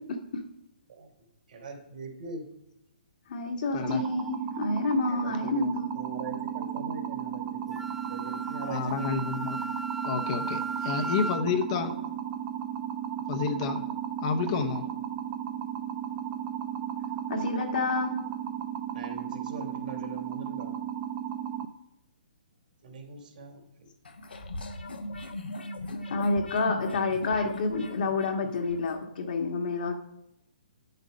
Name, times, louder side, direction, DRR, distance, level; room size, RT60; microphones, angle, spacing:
voice 1, 1.5-2.5 5.1-7.8 8.1-9.2 10.7-10.8 11.4-11.5 18.9-20.7 22.8-23.9, right 2 dB, 65° right, 2 dB, 2.9 m, -42 dB
voice 2, 3.3-5.9 17.3-18.1 26.1-29.9, left 3 dB, 60° left, 3 dB, 1.6 m, -29 dB
sound 1, 3.8-21.7, right 9 dB, 30° right, 0.7 m, -35 dB
Wind instrument woodwind instrument, 7.7-11.4, right 2 dB, 5° right, 0.3 m, -36 dB
voice 3, 8.7-9.6 10.0-11.9 13.3-13.8 14.2-14.8, left 6 dB, 40° left, 6 dB, 0.8 m, -30 dB
sound 2, 24.0-29.0, left 1 dB, 80° left, 1.2 m, -37 dB
9.1 x 6.7 x 5.2 m, 0.86 s
hypercardioid pair, 140°, 5 cm